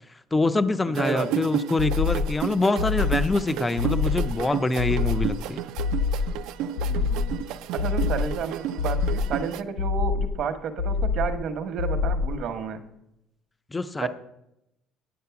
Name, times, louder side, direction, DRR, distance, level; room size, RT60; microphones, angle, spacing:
voice 1, 0.3-5.7 13.7-14.1, left 2 dB, 10° left, 13 dB, 0.4 m, -25 dB
sound 1, 0.9-9.6, right 10 dB, 70° right, 0.4 m, -32 dB
voice 2, 1.0-1.4 6.8-7.4 7.7-12.8 14.0-14.1, right 6 dB, 50° right, 7 dB, 1.0 m, -31 dB
sound 2, 1.8-2.4 2.8-3.4 3.8-4.4 4.8-5.4 5.8-6.4 6.8-7.4 7.8-8.4 8.8-9.4 9.8-10.4 10.8-11.4 11.8-12.4, left 5 dB, 90° left, 0.7 m, -26 dB
9.5 x 8.5 x 5.7 m, 0.82 s
cardioid pair, 180°, 0 cm